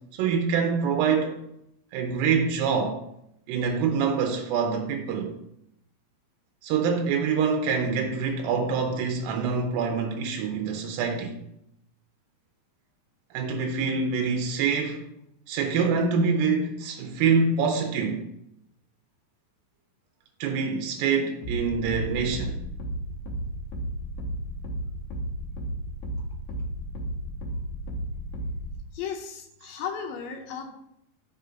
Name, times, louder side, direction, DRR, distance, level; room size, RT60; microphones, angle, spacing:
voice 1, 0.2-1.4 1.9-3.0 3.5-5.3 6.6-11.4 13.3-15.0 15.5-18.2 20.4-22.6, right 5 dB, 85° right, 2.5 m, -25 dB
sound 1, 21.4-28.8, right 1 dB, 65° left, 2.0 m, -33 dB
voice 2, 28.9-30.7, left 7 dB, 80° left, 2.4 m, -35 dB
5.7 x 3.8 x 5.6 m
omnidirectional pair, 4.0 m